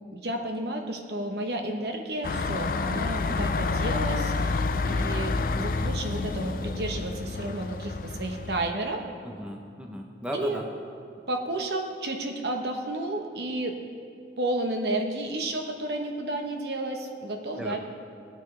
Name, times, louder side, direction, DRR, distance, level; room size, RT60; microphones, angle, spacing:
voice 1, 0.1-9.0 10.3-10.6 11.3-13.8 14.4-17.8, right 1 dB, 60° right, 3 dB, 1.1 m, -31 dB
sound 1, 2.2-8.7, left 3 dB, 50° left, 0.4 m, -29 dB
voice 2, 3.3-3.6 9.2-10.7 17.6-17.8, equal, 5° right, 0 dB, 0.7 m, -36 dB
17.5 x 9.3 x 3.3 m, 2.3 s
head